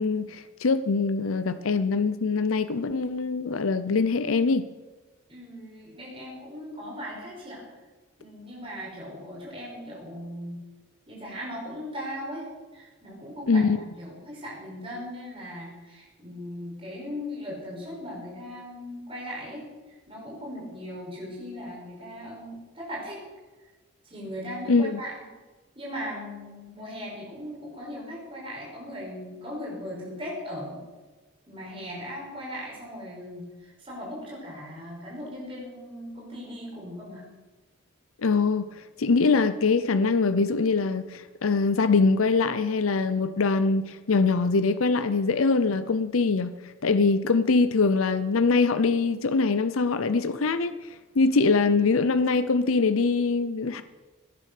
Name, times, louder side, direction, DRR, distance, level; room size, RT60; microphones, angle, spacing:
voice 1, 0.0-4.6 13.5-13.8 24.7-25.0 38.2-38.7 39.0-46.5 46.8-50.7 51.2-53.8, left 4 dB, 85° left, 12 dB, 0.6 m, -23 dB
voice 2, 5.3-7.7 8.2-10.6 11.1-12.4 12.7-13.7 14.0-23.2 24.0-25.1 25.8-30.8 31.5-37.2, equal, 25° right, -4 dB, 5.7 m, -38 dB
17.5 x 9.9 x 6.5 m, 1.3 s
head